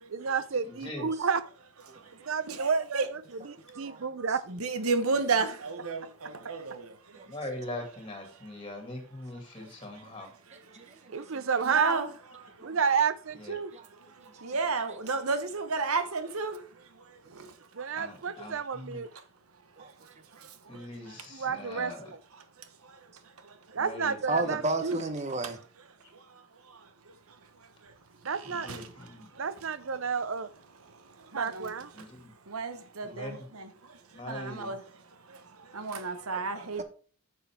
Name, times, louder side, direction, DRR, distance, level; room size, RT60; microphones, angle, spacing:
voice 1, 0.1-1.4 2.3-4.4 11.1-12.0 12.6-13.7 17.8-19.1 21.3-21.9 23.7-25.0 28.2-28.7 29.4-30.5 31.3-31.9, right 6 dB, 65° right, 0.6 m, -30 dB
voice 2, 0.6-1.1 7.3-10.3 13.3-13.6 17.4-17.5 17.9-19.0 20.7-22.1 23.8-24.6 28.4-29.3 31.9-32.3 33.0-33.5 34.1-34.8, left 1 dB, 25° left, 2.3 m, -42 dB
voice 3, 1.9-3.1 3.4-3.8 4.5-7.3 11.1-11.2 11.6-12.1 12.4-12.7 14.1-16.6 17.1-17.9 19.8-19.9 20.3-20.8 22.8-23.0 23.4-23.8 26.3-26.4 26.7-26.9 27.8-27.9 28.2-28.8 29.3-29.5 31.2-31.7 32.5-34.0 34.3-34.8 35.3-36.8, right 4 dB, 85° right, 1.2 m, -33 dB
voice 4, 10.7-11.5 12.6-12.8 13.7-13.9 14.2-14.7 15.1-15.2 19.8-19.9 24.3-25.6, right 2 dB, 30° right, 0.9 m, -34 dB
9.7 x 6.9 x 3.5 m
head